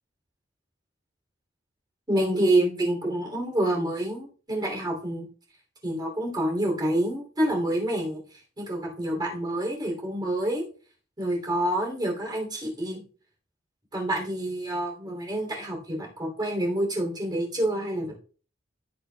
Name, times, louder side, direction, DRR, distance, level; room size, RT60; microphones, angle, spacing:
voice 1, 2.1-5.3 5.8-10.6 11.2-13.0 13.9-18.1, right 1 dB, 20° right, 0 dB, 2.8 m, -27 dB
16.0 x 6.6 x 2.2 m, 0.40 s
head